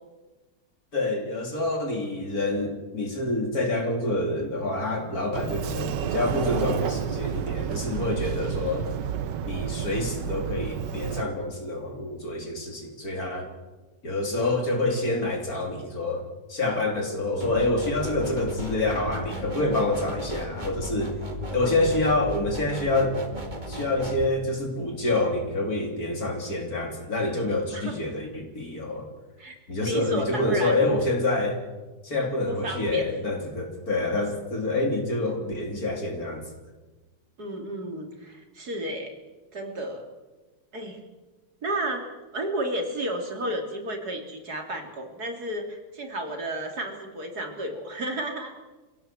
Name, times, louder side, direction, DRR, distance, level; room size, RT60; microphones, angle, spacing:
voice 1, 0.9-8.8 9.4-13.5 14.0-16.2 16.5-21.2 21.5-23.2 23.7-29.1 29.7-31.6 32.0-36.4, left 2 dB, 50° left, 3 dB, 3.8 m, -27 dB
Sliding door, 5.3-11.2, right 9 dB, 75° right, 1.6 m, -30 dB
sound 1, 17.4-24.3, equal, 25° right, 2.6 m, -35 dB
voice 2, 21.5-21.9 27.7-28.0 29.4-30.9 32.5-33.1 37.4-39.1 39.5-40.1 40.7-41.0 41.6-42.0 42.3-48.5, right 1 dB, 55° right, 3 dB, 3.5 m, -32 dB
25.5 x 17.0 x 7.7 m, 1.2 s
omnidirectional pair, 2.0 m